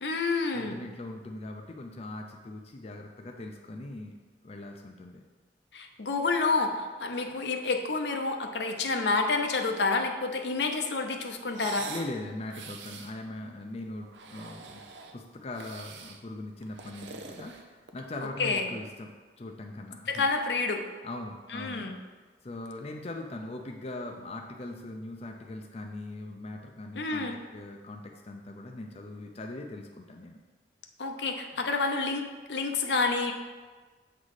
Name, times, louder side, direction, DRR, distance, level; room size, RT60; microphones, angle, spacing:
voice 1, 0.0-0.8 5.7-11.9 18.4-18.6 20.1-20.8 21.5-22.0 27.0-27.4 31.0-33.3, left 3 dB, 75° left, 4 dB, 0.7 m, -29 dB
voice 2, 0.5-4.2 4.4-5.2 11.9-14.8 15.1-19.1 19.4-20.2 21.0-21.9 22.4-27.3 27.5-30.4, left 2 dB, 35° left, 2 dB, 0.5 m, -40 dB
sound 1, 11.5-12.1 12.5-13.1 14.0-15.2 15.5-16.2 16.6-18.1, right 5 dB, 90° right, 0.6 m, -44 dB
7.3 x 4.0 x 4.9 m, 1.4 s
head